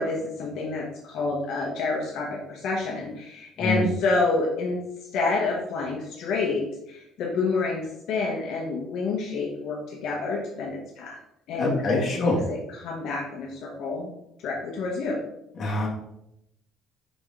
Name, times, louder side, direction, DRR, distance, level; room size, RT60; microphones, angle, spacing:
voice 1, 0.0-4.8 5.1-11.2 11.5-14.1 14.4-15.2, left 3 dB, 60° left, -2 dB, 1.1 m, -28 dB
voice 2, 11.6-12.4 15.6-15.9, left 2 dB, 30° left, -3 dB, 1.6 m, -24 dB
5.3 x 4.9 x 3.7 m, 0.83 s
cardioid pair, 165°, 0 cm